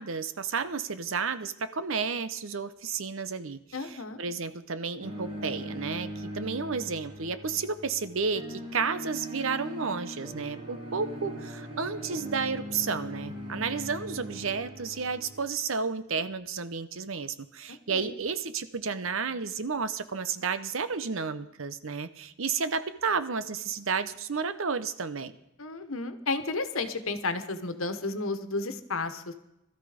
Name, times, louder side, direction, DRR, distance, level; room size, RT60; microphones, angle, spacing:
voice 1, 0.0-25.3, right 5 dB, 70° right, 12 dB, 0.8 m, -32 dB
voice 2, 3.7-4.2 17.7-18.1 25.6-29.3, left 3 dB, 75° left, 9 dB, 1.4 m, -32 dB
sound 1, 5.0-15.4, equal, 30° right, 2.9 m, -40 dB
21.0 x 13.5 x 5.1 m, 0.87 s
head